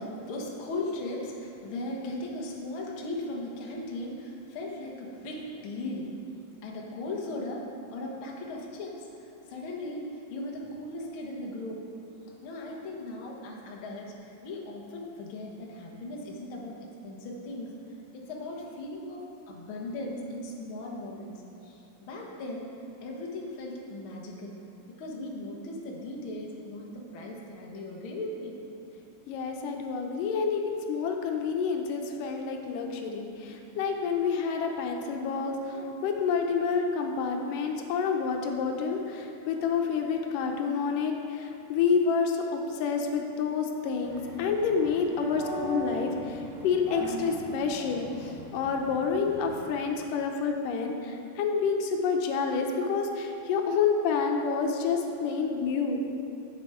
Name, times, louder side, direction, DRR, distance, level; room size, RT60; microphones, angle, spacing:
voice 1, 0.0-6.1 6.6-11.9 12.4-17.7 18.1-22.7 23.0-24.6 25.0-28.6, left 1 dB, 55° left, -1 dB, 1.6 m, -38 dB
voice 2, 29.3-56.0, left 5 dB, 85° left, 3 dB, 2.4 m, -28 dB
sound 1, 44.0-49.7, right 1 dB, 35° right, 3.0 m, -39 dB
11.0 x 7.7 x 4.9 m, 2.7 s
omnidirectional pair, 3.7 m